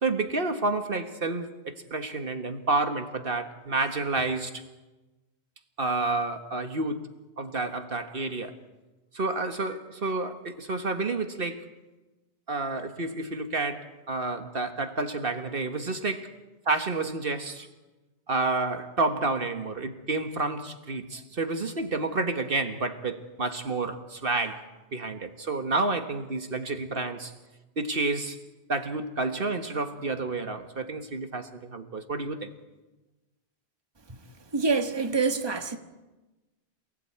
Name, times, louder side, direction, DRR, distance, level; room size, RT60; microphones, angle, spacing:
voice 1, 0.0-4.6 5.8-7.1 7.4-8.5 9.1-11.7 12.5-16.3 16.6-17.7 18.3-24.6 24.9-27.3 27.8-28.4 28.7-32.5, right 3 dB, 60° right, 1.7 m, -30 dB
voice 2, 34.5-35.8, right 4 dB, 25° right, 1.5 m, -26 dB
27.5 x 19.0 x 8.6 m
omnidirectional pair, 1.1 m